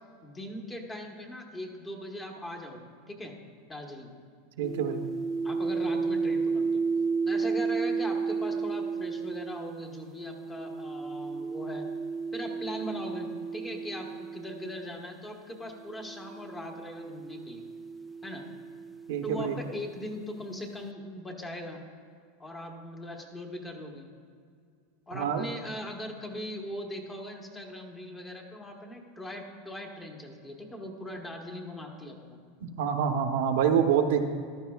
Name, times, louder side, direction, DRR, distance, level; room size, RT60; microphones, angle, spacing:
voice 1, 0.2-3.3 3.7-4.1 5.4-6.8 7.3-11.8 12.3-17.6 18.2-18.4 19.2-21.8 22.4-24.1 25.1-32.2, left 1 dB, 15° left, 2 dB, 1.1 m, -40 dB
sound 1, 4.6-15.0 15.9-19.6, right 4 dB, 10° right, 0.3 m, -33 dB
voice 2, 4.6-5.0 19.1-19.5 25.1-25.4 32.8-34.2, right 8 dB, 80° right, 5 dB, 0.9 m, -26 dB
14.5 x 12.0 x 2.3 m, 2.1 s
supercardioid pair, 150°, 0 cm